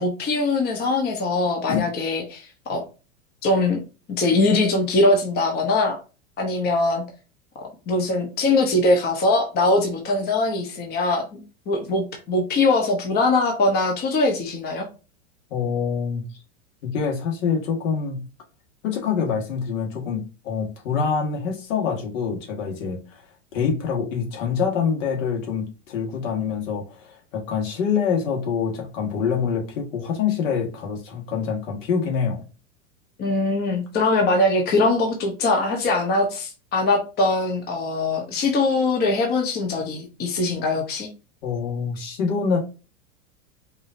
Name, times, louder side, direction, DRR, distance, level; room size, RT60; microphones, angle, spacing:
voice 1, 0.0-2.8 3.4-3.8 4.2-6.0 6.4-7.0 7.9-11.4 11.7-14.9 33.2-41.1, left 2 dB, 25° left, 2 dB, 0.9 m, -22 dB
voice 2, 15.5-16.4 16.8-18.3 18.8-23.2 23.5-32.4 41.4-42.6, left 6 dB, 65° left, 1 dB, 1.8 m, -25 dB
4.8 x 2.7 x 2.7 m, 0.32 s
supercardioid pair, 135°, 41 cm